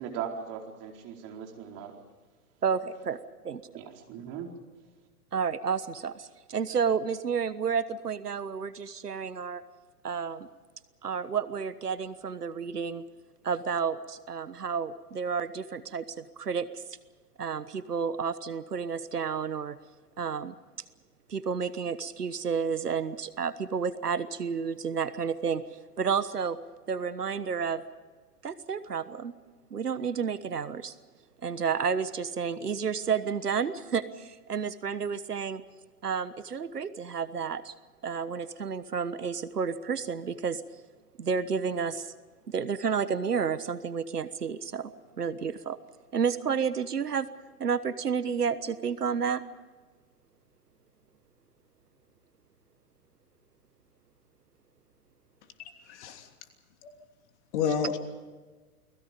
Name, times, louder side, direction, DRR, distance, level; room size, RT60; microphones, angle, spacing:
voice 1, 0.0-1.9 3.7-4.5, right 8 dB, 30° right, 2 dB, 4.4 m, -38 dB
voice 2, 2.6-3.2 3.4-3.7 5.3-9.6 10.0-10.5 11.0-13.0 13.4-16.8 17.4-19.8 20.2-20.5 21.3-26.6 26.9-27.8 28.4-29.3 29.7-30.9 31.4-35.6 36.0-37.7 38.0-40.6 41.2-42.1 42.5-44.9 45.2-45.8 46.1-47.3 47.6-49.4, right 6 dB, 80° right, 15 dB, 1.3 m, -31 dB
voice 3, 55.9-56.3 56.8-56.9 57.5-58.0, left 6 dB, 45° left, 6 dB, 3.1 m, -29 dB
29.5 x 20.5 x 5.3 m, 1.4 s
figure-of-eight pair, 115°, 46 cm